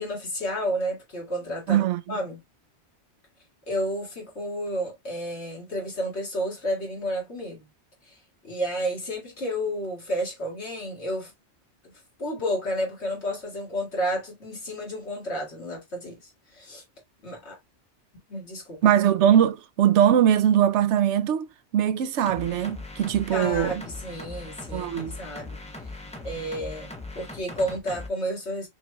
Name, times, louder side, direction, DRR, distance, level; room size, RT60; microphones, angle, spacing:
voice 1, 0.0-2.4 3.7-7.6 8.0-8.1 8.4-11.3 11.8-11.9 12.2-16.8 17.2-17.6 18.3-18.8 23.3-25.6 25.8-25.9 26.2-26.9 27.2-28.7, equal, 75° left, 2.3 m, -31 dB
voice 2, 1.7-2.2 18.8-21.5 21.7-23.8 24.7-25.2, right 10 dB, 90° right, 0.9 m, -21 dB
sound 1, 22.3-28.1, left 2 dB, 5° left, 0.9 m, -39 dB
5.9 x 3.0 x 2.2 m
omnidirectional pair, 1.1 m